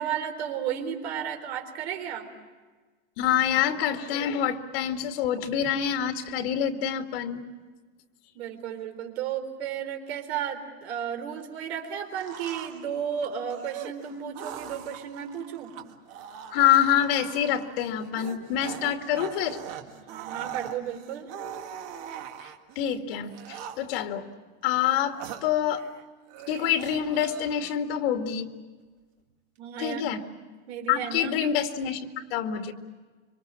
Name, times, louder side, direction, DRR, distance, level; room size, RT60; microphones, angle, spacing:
voice 1, 0.0-2.3 8.3-15.7 20.1-21.3 29.6-30.1 30.7-31.4, right 8 dB, 80° right, 5 dB, 4.1 m, -33 dB
voice 2, 3.2-7.4 16.5-19.6 22.4-22.5 22.8-24.3 24.6-25.8 26.5-28.5 29.8-30.2 30.9-32.7, left 9 dB, 65° left, 5 dB, 2.2 m, -26 dB
sound 1, 12.1-22.8 23.3-24.1 24.6-26.0 26.3-27.8, right 9 dB, 45° right, 2.0 m, -42 dB
26.0 x 25.0 x 7.4 m, 1.4 s
supercardioid pair, 175°, 32 cm